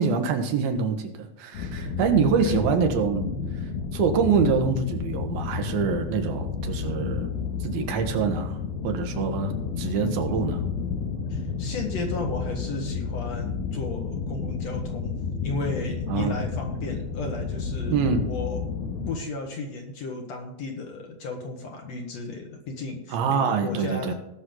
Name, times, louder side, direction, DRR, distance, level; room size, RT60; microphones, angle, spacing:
voice 1, 0.0-3.4 3.9-7.3 7.6-8.6 8.8-10.6 16.1-16.4 17.9-18.2 23.1-24.1, right 6 dB, 90° right, 5 dB, 3.1 m, -25 dB
sound 1, 1.5-19.2, left 5 dB, 90° left, 3.1 m, -31 dB
voice 2, 11.3-18.6 19.1-24.1, left 3 dB, 60° left, 2 dB, 2.1 m, -34 dB
19.0 x 6.3 x 3.8 m, 0.90 s
omnidirectional pair, 4.1 m